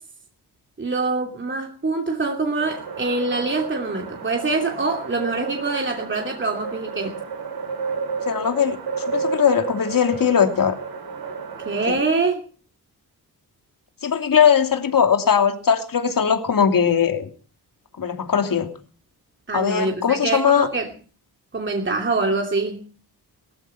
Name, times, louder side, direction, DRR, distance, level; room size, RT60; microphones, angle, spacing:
voice 1, 0.8-7.2 11.6-12.4 19.5-20.9 21.5-22.8, right 3 dB, 30° right, 2 dB, 2.8 m, -24 dB
sound 1, 2.6-11.9, right 5 dB, 70° right, 5.8 m, -31 dB
voice 2, 8.3-10.7 11.9-12.0 14.0-17.3 18.0-18.7 19.5-20.7, left 7 dB, 55° left, 6 dB, 2.8 m, -20 dB
18.5 x 14.0 x 5.6 m, 0.41 s
cardioid pair, 85°, 39 cm